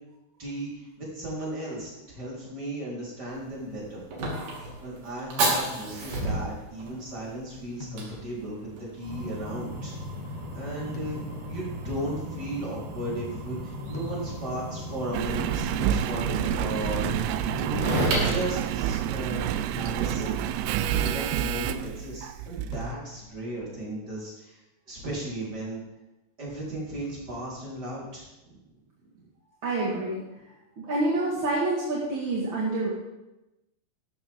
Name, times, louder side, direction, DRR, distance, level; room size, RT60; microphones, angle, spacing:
voice 1, 0.4-4.0 4.8-10.0 10.2-11.2 11.5-17.9 18.2-20.3 20.9-24.6 24.9-25.8 26.4-28.6 29.2-29.3, right 1 dB, 25° right, -6 dB, 4.5 m, -36 dB
Fire, 3.3-19.5, right 1 dB, 60° right, 4.0 m, -33 dB
sound 1, 7.8-8.6 10.9-11.7 13.9-14.7 16.8-17.6 19.8-20.5 22.7-23.5, left 8 dB, 65° left, 1.9 m, -44 dB
Engine, 15.1-23.0 23.6-23.7, right 10 dB, 90° right, 2.6 m, -28 dB
voice 2, 29.6-30.2 30.8-32.9, right 2 dB, 40° right, -5 dB, 2.0 m, -27 dB
14.0 x 12.5 x 3.7 m, 0.98 s
omnidirectional pair, 4.5 m